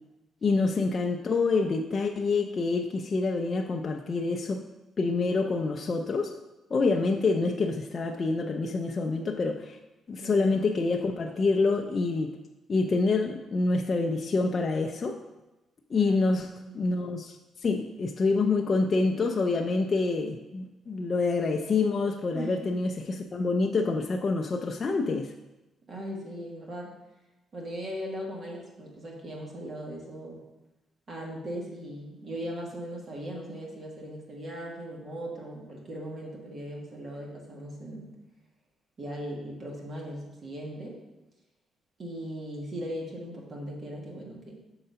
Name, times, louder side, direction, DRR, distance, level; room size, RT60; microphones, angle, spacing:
voice 1, 0.4-4.6 5.0-6.3 6.7-9.8 10.1-12.4 12.7-15.2 15.9-16.5 16.7-25.3, left 3 dB, 40° left, 2 dB, 0.5 m, -27 dB
voice 2, 10.2-10.5 15.9-16.1 16.6-16.8 22.3-22.6 25.9-26.9 27.5-30.4 31.1-38.1 39.0-41.0 42.0-44.5, equal, 45° right, -1 dB, 1.6 m, -38 dB
6.6 x 3.9 x 5.6 m, 1.0 s
cardioid pair, 105°, 0 cm